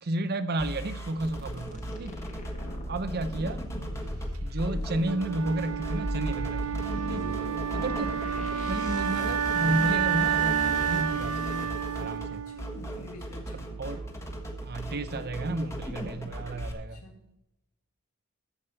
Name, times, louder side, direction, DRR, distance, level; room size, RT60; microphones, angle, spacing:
voice 1, 0.0-2.2 2.9-3.6 4.4-6.7 7.1-7.3 7.7-8.2 8.5-12.4 13.8-14.1 14.6-17.0, right 1 dB, 50° right, 11 dB, 0.8 m, -32 dB
sound 1, 0.6-16.7, right 1 dB, 15° left, 1.4 m, -38 dB
sound 2, 1.2-12.0, equal, 35° left, 1.5 m, -37 dB
Wind instrument woodwind instrument, 5.0-13.0, right 9 dB, 90° right, 0.7 m, -30 dB
voice 2, 7.2-7.6 12.5-13.7 16.8-17.4, equal, 80° left, 1 dB, 2.8 m, -51 dB
14.5 x 5.2 x 5.6 m, 0.88 s
head